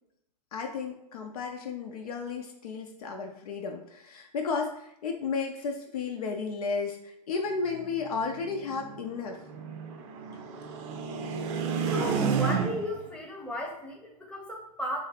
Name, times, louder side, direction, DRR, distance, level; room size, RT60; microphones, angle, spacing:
voice 1, 0.5-9.4, left 4 dB, 65° left, 3 dB, 0.6 m, -33 dB
sound 1, 7.6-13.1, right 6 dB, 45° right, 0.6 m, -32 dB
voice 2, 11.9-15.0, equal, 5° left, -1 dB, 0.8 m, -35 dB
3.1 x 2.7 x 4.1 m, 0.75 s
hypercardioid pair, 105°, 21 cm